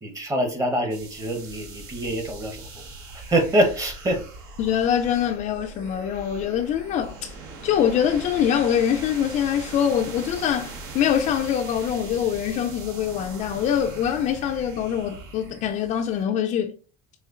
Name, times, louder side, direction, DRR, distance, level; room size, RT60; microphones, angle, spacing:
voice 1, 0.0-2.8 3.1-4.3, right 1 dB, 20° right, 0.9 m, -25 dB
sound 1, 0.9-16.2, right 3 dB, 70° right, 1.0 m, -40 dB
voice 2, 4.6-7.3 7.6-16.7, left 9 dB, 40° left, 0.4 m, -24 dB
4.2 x 3.0 x 2.4 m
supercardioid pair, 110°, 18 cm